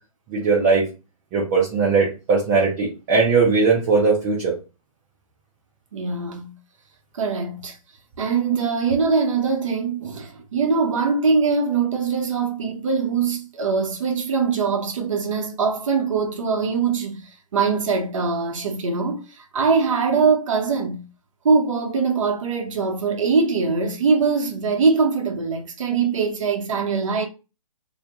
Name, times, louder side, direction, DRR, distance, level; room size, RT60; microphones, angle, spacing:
voice 1, 0.3-0.8 1.3-4.5, right 4 dB, 15° right, 0.3 m, -19 dB
voice 2, 5.9-6.5 7.1-7.8 8.2-21.0 21.4-27.3, right 5 dB, 55° right, 0.7 m, -22 dB
2.1 x 2.1 x 2.8 m
hypercardioid pair, 145°, 20 cm